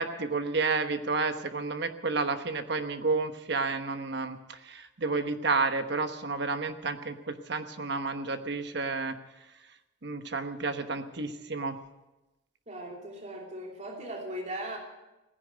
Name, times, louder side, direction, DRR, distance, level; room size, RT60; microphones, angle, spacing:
voice 1, 0.0-9.1 10.0-11.8, right 4 dB, 60° right, 8 dB, 1.2 m, -31 dB
voice 2, 12.7-14.8, right 1 dB, 35° right, -1 dB, 2.8 m, -38 dB
16.5 x 10.5 x 8.0 m, 1.0 s
head